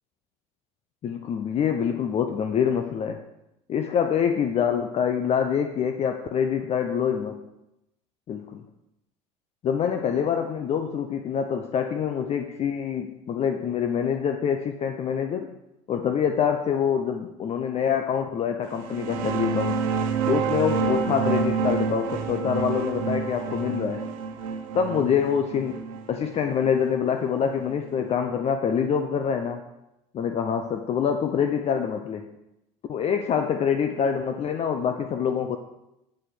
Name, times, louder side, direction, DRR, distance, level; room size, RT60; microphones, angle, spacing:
voice 1, 1.0-3.2 3.7-7.4 8.3-8.6 9.6-15.5 15.9-19.8 20.3-24.1 24.7-25.8 26.1-29.7 30.1-32.3 32.9-35.6, left 7 dB, 40° left, 6 dB, 0.7 m, -25 dB
sound 1, 18.7-28.0, right 5 dB, 85° right, 1.0 m, -28 dB
7.9 x 6.3 x 6.4 m, 0.89 s
supercardioid pair, 100°, 17 cm